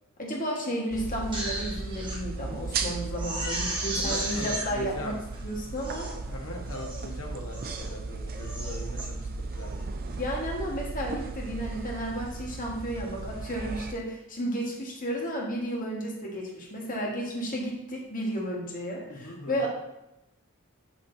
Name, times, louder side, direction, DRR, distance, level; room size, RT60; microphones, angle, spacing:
voice 1, 0.2-6.1 10.2-19.7, equal, 40° left, -2 dB, 1.4 m, -33 dB
sound 1, 0.9-13.9, right 3 dB, 45° right, 0.5 m, -36 dB
Crying sobbing, 1.1-2.2 2.6-2.7 3.1-4.7 5.3-5.4 5.8-6.2 6.7-7.1 7.5-7.9 8.3-9.1 9.5-9.8, right 1 dB, 25° right, 1.1 m, -35 dB
voice 2, 3.9-5.2 6.3-9.7 19.1-19.7, left 1 dB, 75° left, 1 dB, 1.2 m, -40 dB
6.2 x 6.0 x 2.7 m, 0.90 s
head